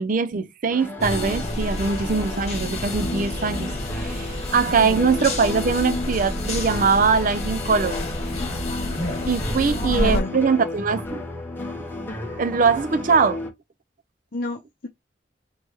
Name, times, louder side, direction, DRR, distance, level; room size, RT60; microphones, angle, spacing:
voice 1, 0.0-3.7 4.0-8.0 9.3-11.2 12.4-13.4, right 5 dB, 50° right, 0.5 m, -22 dB
sound 1, 0.7-13.5, left 2 dB, 15° left, 1.0 m, -33 dB
sound 2, 1.0-10.2, left 1 dB, 40° left, 1.6 m, -29 dB
voice 2, 9.6-10.5 14.3-14.9, left 2 dB, 55° left, 0.7 m, -30 dB
3.3 x 3.0 x 4.5 m
head